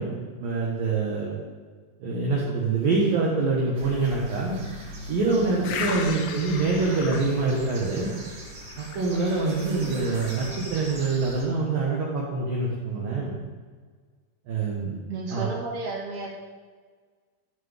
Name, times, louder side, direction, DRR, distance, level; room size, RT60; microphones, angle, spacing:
voice 1, 0.0-1.4 2.0-4.6 5.1-8.1 8.8-13.3 14.5-15.0 15.3-15.5, right 3 dB, 65° right, -5 dB, 2.3 m, -25 dB
sound 1, 3.7-11.4, equal, 45° right, 2.7 m, -40 dB
sound 2, 5.6-10.8, left 6 dB, 80° left, 2.9 m, -37 dB
voice 2, 5.9-6.3 15.1-16.3, right 3 dB, 85° right, -5 dB, 1.3 m, -33 dB
13.5 x 7.5 x 3.5 m, 1.5 s
omnidirectional pair, 5.9 m